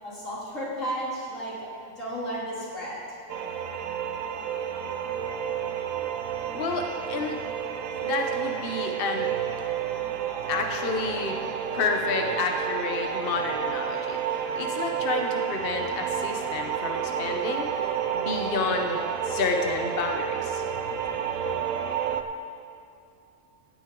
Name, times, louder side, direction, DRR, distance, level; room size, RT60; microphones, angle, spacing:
voice 1, 0.0-1.7 2.0-3.2, right 1 dB, 80° left, -7 dB, 3.3 m, -33 dB
sound 1, 3.3-22.2, right 8 dB, 85° right, 1.0 m, -30 dB
voice 2, 6.5-7.4 8.0-9.3 10.5-11.4 11.7-20.6, left 4 dB, 50° left, 3 dB, 1.0 m, -30 dB
15.5 x 9.6 x 3.7 m, 2.8 s
omnidirectional pair, 1.3 m